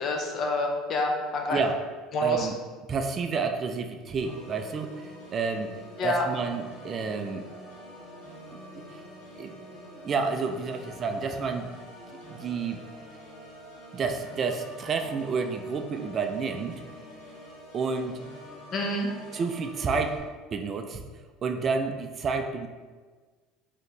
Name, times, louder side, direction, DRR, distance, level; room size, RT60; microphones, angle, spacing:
voice 1, 0.0-1.6 2.1-2.5 6.0-6.2 18.7-19.1, left 2 dB, 45° left, 2 dB, 0.7 m, -28 dB
voice 2, 2.2-2.5 2.9-5.7 6.0-7.4 8.9-9.0 9.4-9.5 10.0-11.7 12.1-12.8 13.9-16.8 17.7-18.2 19.3-20.2 20.5-21.0 21.4-22.7, right 5 dB, 35° right, 6 dB, 0.3 m, -30 dB
Organ, 4.2-20.2, equal, 85° left, 1.5 m, -46 dB
4.1 x 2.9 x 3.2 m, 1.4 s
supercardioid pair, 115°, 0 cm